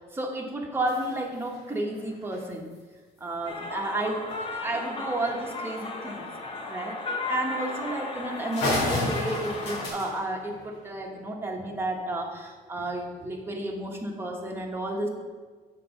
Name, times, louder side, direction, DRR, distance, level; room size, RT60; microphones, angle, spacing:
voice 1, 0.1-2.7 3.2-6.2 6.6-7.0 7.3-15.1, right 1 dB, 15° right, 0 dB, 1.4 m, -32 dB
sound 1, 0.9-2.8 4.3-4.4 4.7-4.8 5.3-5.4 6.3-6.5 7.2-7.4 7.8-7.9 8.2-8.3 8.5-11.2, left 1 dB, 75° left, 2.1 m, -33 dB
sound 2, 3.5-9.9, left 3 dB, 30° left, 1.0 m, -35 dB
7.5 x 4.8 x 5.6 m, 1.4 s
cardioid pair, 110°, 17 cm